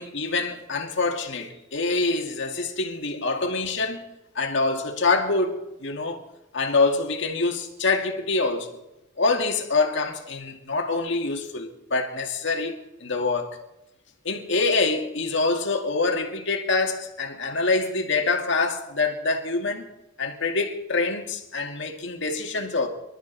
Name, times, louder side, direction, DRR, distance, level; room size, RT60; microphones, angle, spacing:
voice 1, 0.0-4.1 4.4-6.2 6.5-8.7 9.2-12.8 13.0-13.6 14.2-19.8 20.2-22.9, left 3 dB, 65° left, 2.3 m, -25 dB
27.0 x 12.5 x 4.2 m
head